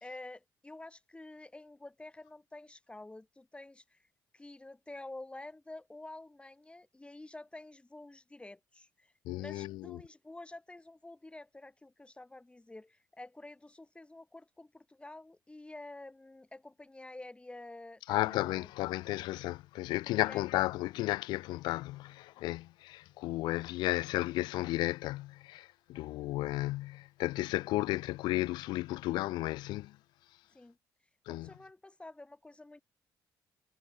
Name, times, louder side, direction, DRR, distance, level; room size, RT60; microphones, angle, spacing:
voice 1, 0.0-4.0 4.3-18.7 20.1-20.4 30.5-30.8 31.3-32.8, left 2 dB, 15° left, 1.1 m, -49 dB
voice 2, 9.3-10.0 18.1-30.0 31.3-31.5, left 18 dB, 85° left, 0.4 m, -33 dB
supercardioid pair, 65°, 7 cm